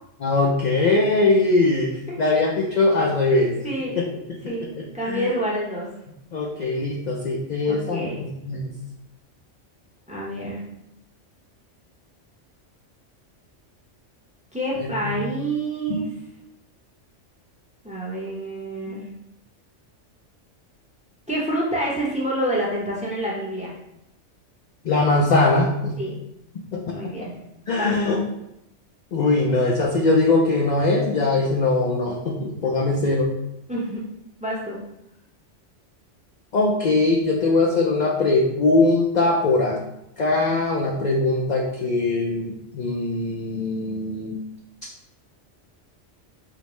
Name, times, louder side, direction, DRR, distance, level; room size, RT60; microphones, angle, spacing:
voice 1, 0.2-3.6 4.0-4.1 4.8-5.3 6.3-8.7 14.8-15.2 15.9-16.0 18.9-19.0 24.8-26.0 26.7-27.0 27.7-28.2 29.1-33.3 36.5-39.8 40.2-44.4, left 2 dB, 60° left, -2 dB, 0.4 m, -21 dB
voice 2, 3.6-4.0 4.5-4.7 4.9-5.9 7.7-8.3 10.1-10.6 14.5-16.1 17.8-19.1 21.3-23.7 26.0-26.2 26.9-27.3 27.8-28.2 33.7-34.0 34.4-34.8, right 1 dB, 10° right, -4 dB, 0.6 m, -27 dB
4.9 x 2.0 x 3.0 m, 0.81 s
omnidirectional pair, 1.2 m